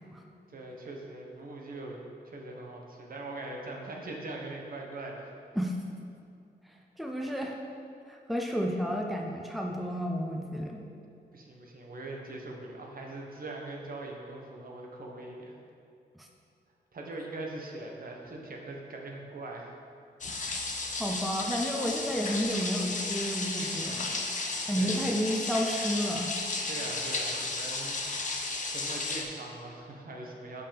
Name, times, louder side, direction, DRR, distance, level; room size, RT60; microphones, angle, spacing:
voice 1, 0.5-5.3 11.3-15.5 16.9-19.7 24.8-25.0 26.7-30.6, right 2 dB, 55° right, 0 dB, 1.1 m, -41 dB
voice 2, 7.0-7.6 8.1-10.8 16.1-16.3 21.0-24.2 24.7-26.3, equal, ahead, 1 dB, 0.7 m, -31 dB
sound 1, 20.2-29.2, left 3 dB, 45° left, 0.9 m, -33 dB
5.5 x 5.4 x 5.1 m, 2.5 s
cardioid pair, 70°, 18 cm